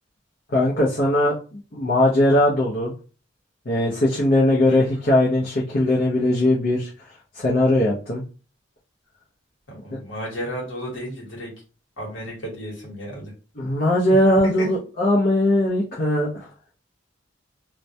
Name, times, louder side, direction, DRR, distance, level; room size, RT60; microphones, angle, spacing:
voice 1, 0.5-2.9 3.7-6.9 7.3-8.2 13.6-16.5, left 1 dB, 50° left, -5 dB, 0.6 m, -20 dB
voice 2, 9.7-11.5 12.0-13.3 14.4-14.7, equal, 75° left, -3 dB, 1.1 m, -33 dB
2.2 x 2.1 x 2.7 m, 0.35 s
head